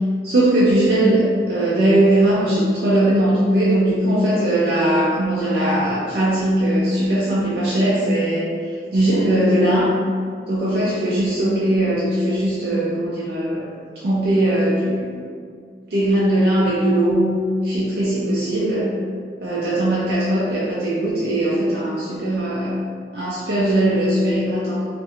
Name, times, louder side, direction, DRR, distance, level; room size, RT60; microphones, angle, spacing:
voice 1, 0.2-8.6 8.9-9.9 10.5-13.7 14.0-15.1 15.9-17.4 17.6-18.9 19.4-22.8 23.1-24.9, right 1 dB, 60° right, -9 dB, 0.5 m, -19 dB
2.5 x 2.4 x 2.8 m, 2.1 s
head